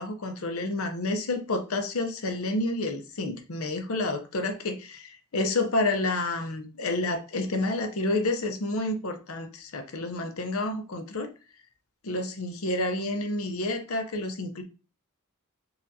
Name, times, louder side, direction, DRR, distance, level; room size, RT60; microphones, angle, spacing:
voice 1, 0.0-11.3 12.0-14.6, left 2 dB, 70° left, 0.7 m, -29 dB
5.5 x 2.5 x 2.6 m
head